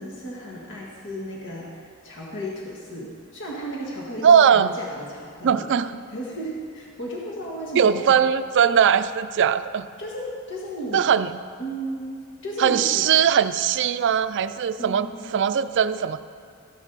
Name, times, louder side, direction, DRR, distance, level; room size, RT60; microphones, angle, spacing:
voice 1, 0.0-5.7 6.1-8.1 10.0-11.0 11.6-12.2 12.4-13.1 14.8-15.4, equal, 55° left, -3 dB, 1.7 m, -34 dB
voice 2, 4.2-4.7 5.4-5.9 7.8-9.9 10.9-11.3 12.6-16.2, right 8 dB, 55° right, 12 dB, 0.4 m, -20 dB
14.0 x 11.0 x 4.0 m, 2.3 s
head